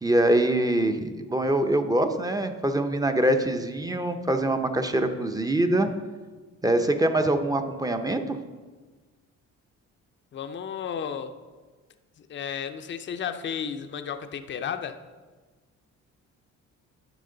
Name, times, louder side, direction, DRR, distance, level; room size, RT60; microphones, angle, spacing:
voice 1, 0.0-5.9 6.6-8.4, right 1 dB, 10° right, 7 dB, 0.7 m, -24 dB
voice 2, 10.3-11.4 12.2-15.0, left 7 dB, 40° left, 9 dB, 0.6 m, -33 dB
10.0 x 6.3 x 3.9 m, 1.4 s
cardioid pair, 90°, 30 cm